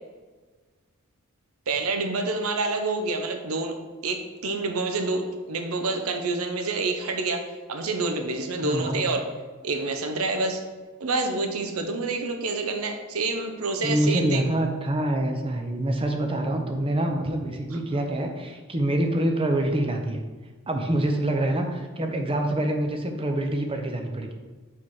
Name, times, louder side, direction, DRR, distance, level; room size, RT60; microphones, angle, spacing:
voice 1, 1.7-3.8 4.0-9.2 9.6-10.6 11.0-14.4 17.7-17.8, right 3 dB, 75° right, 5 dB, 0.8 m, -28 dB
voice 2, 8.6-9.0 13.8-20.2 20.7-24.3, right 1 dB, 25° right, 4 dB, 0.7 m, -26 dB
5.6 x 4.8 x 4.7 m, 1.3 s
head